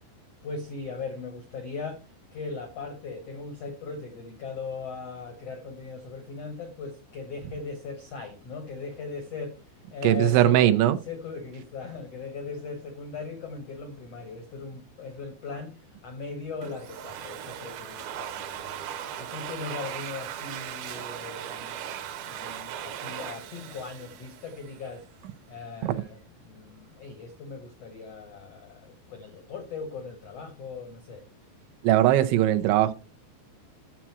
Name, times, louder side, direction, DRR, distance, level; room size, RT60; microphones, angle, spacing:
voice 1, 0.4-2.0 2.3-9.6 9.9-10.8 11.1-18.9 19.2-25.0 25.5-26.2 26.4-31.2, left 4 dB, 85° left, 1.4 m, -39 dB
voice 2, 10.0-11.0 25.8-26.0 31.8-32.9, right 13 dB, 90° right, 3.2 m, -20 dB
Domestic sounds home sounds, 16.6-25.1, right 10 dB, 70° right, 2.6 m, -38 dB
11.5 x 7.4 x 4.6 m
omnidirectional pair, 5.1 m